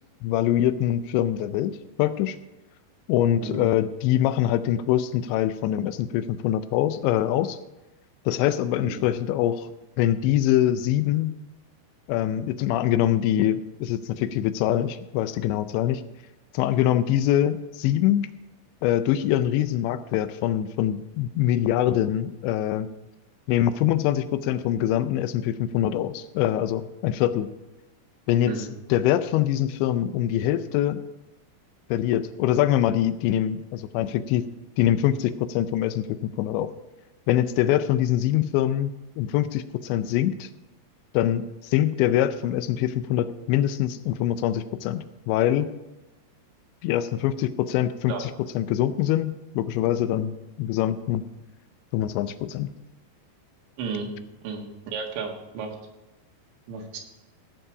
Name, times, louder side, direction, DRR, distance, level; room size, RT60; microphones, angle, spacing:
voice 1, 0.2-2.4 3.1-7.6 8.3-9.7 10.0-11.4 12.1-16.0 16.5-18.3 18.8-22.9 23.5-27.5 28.3-28.5 28.9-31.0 31.9-34.4 34.8-36.1 36.4-36.7 37.3-40.5 41.1-45.7 46.8-51.3 51.9-52.7, left 12 dB, 85° left, 13 dB, 2.9 m, -24 dB
voice 2, 53.8-54.1 54.4-55.8 56.7-57.0, right 5 dB, 85° right, 2 dB, 4.0 m, -33 dB
16.5 x 7.5 x 4.8 m, 1.0 s
omnidirectional pair, 5.1 m